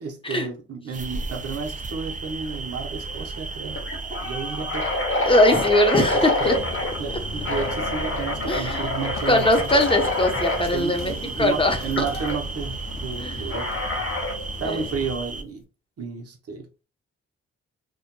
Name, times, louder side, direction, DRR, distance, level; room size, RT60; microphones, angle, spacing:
voice 1, 0.0-3.8 4.1-4.9 6.1-6.7 7.0-9.5 10.7-13.8 14.6-15.7 16.0-16.7, right 5 dB, 55° right, 0.8 m, -32 dB
sound 1, 0.9-15.4, right 3 dB, 25° right, 0.4 m, -34 dB
sound 2, 2.5-2.8 3.1-3.2 3.7-7.0 7.4-10.6 12.0-12.4 13.5-14.4, left 2 dB, 45° left, 0.9 m, -27 dB
voice 2, 5.2-6.5 8.5-8.9 9.3-11.1 11.4-11.8 13.2-13.4 14.6-14.8, left 1 dB, 20° left, 0.8 m, -20 dB
sound 3, 6.4-15.2, left 2 dB, 80° left, 0.6 m, -37 dB
2.6 x 2.2 x 2.2 m
supercardioid pair, 40°, 29 cm